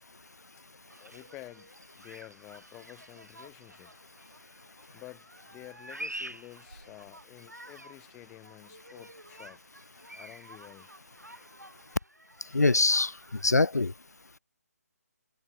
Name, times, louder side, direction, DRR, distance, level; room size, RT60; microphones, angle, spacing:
sound 1, 0.9-13.7, right 1 dB, 90° right, 1.9 m, -48 dB
voice 1, 1.0-3.9 4.9-9.6 10.1-10.9, left 18 dB, 10° left, 0.5 m, -50 dB
voice 2, 12.5-13.9, left 3 dB, 80° left, 0.5 m, -24 dB
figure-of-eight pair, 145°, 9 cm